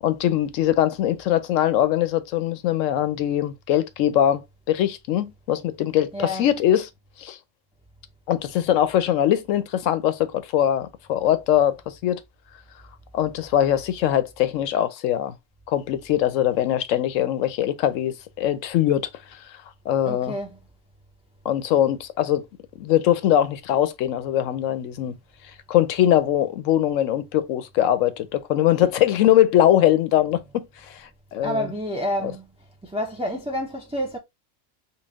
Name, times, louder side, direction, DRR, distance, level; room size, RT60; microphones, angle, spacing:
voice 1, 0.0-4.4 4.7-6.9 7.2-7.4 8.3-12.2 13.1-15.3 15.7-19.1 19.9-20.4 21.4-22.4 22.8-25.1 25.7-31.7 32.2-32.3, left 11 dB, 85° left, 1.0 m, -22 dB
voice 2, 6.1-6.4 20.1-20.5 31.4-32.5 32.8-34.2, equal, 5° right, 0.5 m, -28 dB
3.9 x 2.3 x 3.5 m
omnidirectional pair, 1.3 m